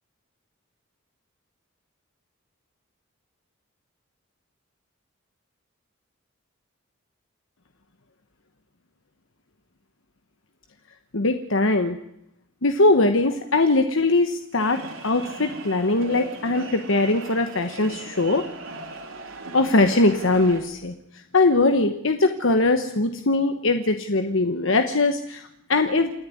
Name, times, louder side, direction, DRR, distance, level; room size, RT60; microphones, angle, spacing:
voice 1, 11.1-12.0 12.6-18.4 19.5-20.9 21.3-26.1, left 2 dB, 65° left, 7 dB, 1.2 m, -21 dB
sound 1, 14.6-20.6, right 3 dB, 70° right, 3.5 m, -38 dB
28.0 x 11.0 x 9.7 m, 0.79 s
head